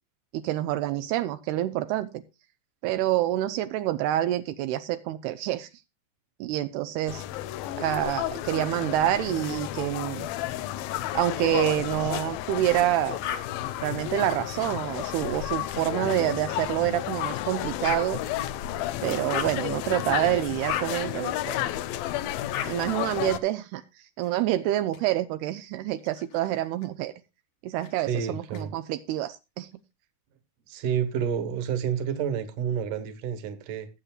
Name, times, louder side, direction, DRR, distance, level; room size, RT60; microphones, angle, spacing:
voice 1, 0.3-2.2 2.8-5.7 6.4-7.2 7.8-10.3 11.1-13.2 13.8-18.2 19.0-21.6 22.7-27.1 27.6-29.7, right 13 dB, 80° right, 2.7 m, -27 dB
sound 1, 7.1-23.4, left 13 dB, 80° left, 2.3 m, -32 dB
sound 2, 13.2-13.4 14.2-14.4 16.5-16.6 17.8-18.0 19.3-19.6 20.7-20.9 22.5-22.7 24.2-25.0 26.0-26.9 27.8-28.6, left 9 dB, 60° left, 2.4 m, -35 dB
voice 2, 28.0-28.7 30.7-33.9, right 8 dB, 60° right, 2.7 m, -29 dB
20.5 x 8.2 x 2.3 m
omnidirectional pair, 4.6 m